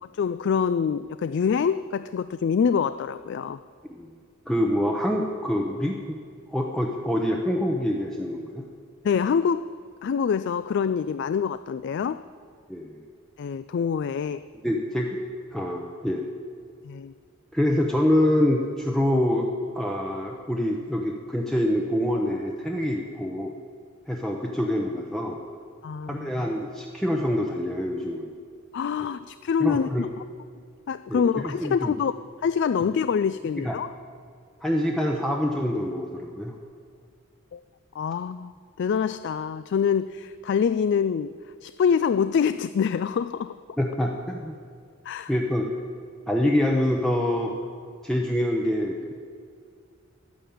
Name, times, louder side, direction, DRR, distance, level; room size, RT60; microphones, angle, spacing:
voice 1, 0.0-3.6 9.0-9.7 10.0-12.2 13.4-14.4 16.8-17.1 25.8-26.3 28.7-29.9 30.9-32.1 32.4-33.9 37.5-37.6 38.0-38.5 38.8-41.3 41.6-43.5 45.1-45.3, left 6 dB, 55° left, 14 dB, 0.3 m, -25 dB
voice 2, 4.5-6.2 6.5-8.6 12.7-12.9 14.6-15.1 15.5-16.2 17.5-19.5 19.7-23.6 24.1-25.4 26.1-28.3 29.0-29.1 29.6-30.0 31.1-31.9 33.6-33.8 34.6-36.5 43.8-44.5 45.3-45.7 46.3-47.5 48.0-49.1, left 1 dB, ahead, 0 dB, 0.8 m, -25 dB
12.0 x 9.1 x 8.5 m, 2.2 s
head